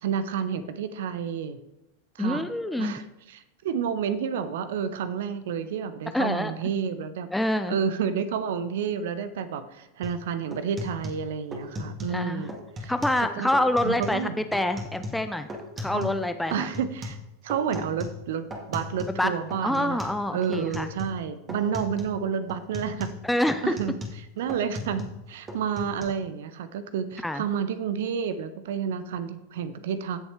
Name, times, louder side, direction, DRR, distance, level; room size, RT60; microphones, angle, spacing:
voice 1, 0.0-1.6 2.1-2.5 2.8-7.3 7.7-12.5 12.8-12.9 13.4-13.5 13.8-14.4 15.9-16.2 16.5-17.2 17.4-20.0 20.3-23.1 23.6-23.9 24.4-25.0 25.3-30.2, right 7 dB, 55° right, 12 dB, 0.8 m, -30 dB
voice 2, 2.2-2.9 6.1-6.5 7.3-7.7 12.1-12.5 12.9-15.5 15.8-16.7 19.1-19.3 19.6-20.9 23.2-23.7 27.2-27.4, left 1 dB, 5° left, 8 dB, 0.6 m, -26 dB
sound 1, 10.0-10.2 10.5-12.2 12.5-13.2 13.5-14.2 14.5-16.2 16.5-19.2 19.5-20.2 20.5-21.2 21.5-22.2 22.5-25.2 25.5-26.0, left 1 dB, 20° right, 2.2 m, -37 dB
16.5 x 7.1 x 3.4 m, 0.91 s
figure-of-eight pair, 90°, 0 cm